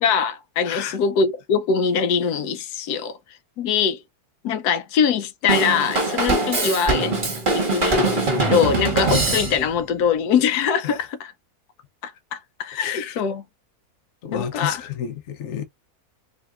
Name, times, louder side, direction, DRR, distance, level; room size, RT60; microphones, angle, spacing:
voice 1, 0.0-3.2 3.6-4.0 4.4-7.2 7.5-11.3 12.0-13.4 14.3-14.8, left 6 dB, 85° left, 1.2 m, -23 dB
Drum kit / Drum, 5.5-9.8, right 2 dB, 35° right, 1.6 m, -22 dB
voice 2, 12.8-13.1 14.2-15.6, left 9 dB, 60° left, 0.9 m, -30 dB
4.9 x 2.8 x 2.4 m
omnidirectional pair, 1.6 m